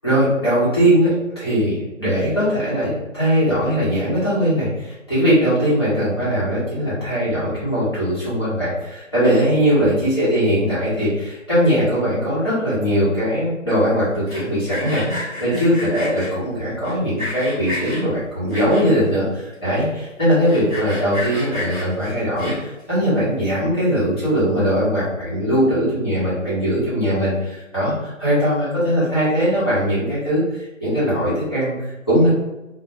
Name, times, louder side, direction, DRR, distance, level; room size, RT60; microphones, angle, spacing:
voice 1, 0.0-32.3, equal, 20° left, -12 dB, 0.9 m, -20 dB
Sawing, 14.1-16.3 16.8-18.0 18.5-19.1 19.5-19.6 19.8-19.9 20.3-22.8, left 1 dB, 20° right, 1.1 m, -30 dB
3.0 x 2.1 x 2.6 m, 1.0 s
figure-of-eight pair, 160°, 39 cm